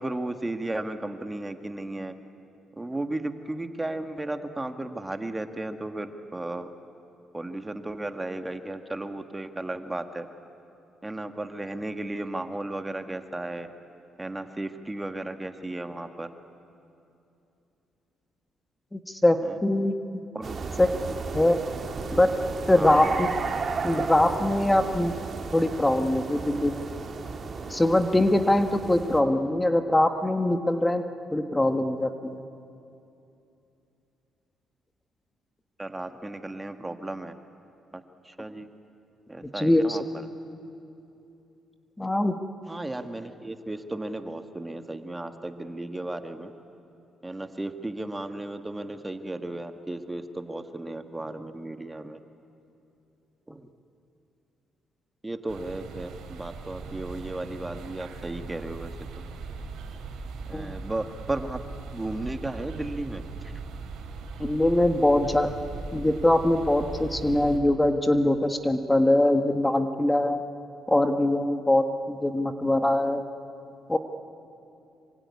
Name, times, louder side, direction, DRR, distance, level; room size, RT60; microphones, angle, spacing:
voice 1, 0.0-2.1 2.8-6.7 7.3-10.3 11.0-13.7 14.2-16.3 19.4-19.6 20.3-20.6 22.8-23.2 35.8-37.3 37.9-38.7 39.3-40.3 42.7-46.5 47.2-52.2 53.5-53.6 55.2-58.9 60.5-61.6 61.9-63.2, right 2 dB, 15° right, 7 dB, 1.6 m, -34 dB
voice 2, 18.9-19.9 20.8-20.9 21.3-21.6 22.1-22.3 22.7-23.3 23.8-25.1 25.5-26.8 27.7-31.0 31.3-32.4 39.5-40.0 42.0-42.3 60.5-60.8 64.4-65.5 65.9-70.4 70.9-73.2 73.9-74.0, left 1 dB, 10° left, 7 dB, 1.5 m, -22 dB
sound 1, 20.4-29.2, right 5 dB, 45° right, 2.6 m, -34 dB
sound 2, 55.5-67.6, right 4 dB, 80° right, 3.2 m, -39 dB
26.0 x 23.5 x 9.6 m, 2.8 s
cardioid pair, 90°, 0 cm